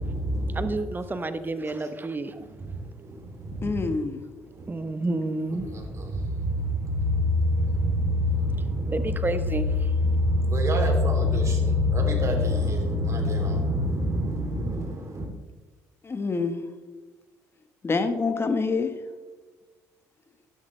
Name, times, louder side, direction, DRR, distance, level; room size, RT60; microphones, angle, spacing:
voice 1, 0.0-0.9 1.1-1.3 1.8-1.9 2.3-4.0 4.5-4.9 5.5-15.2, left 1 dB, 40° right, 3.2 m, -26 dB
voice 2, 0.5-2.6 4.7-5.7 8.9-9.9, right 2 dB, 25° right, 1.1 m, -30 dB
voice 3, 3.6-4.2 16.0-16.7 17.8-18.9, left 4 dB, 30° left, 1.4 m, -26 dB
12.0 x 10.5 x 3.4 m
hypercardioid pair, 65°, 8 cm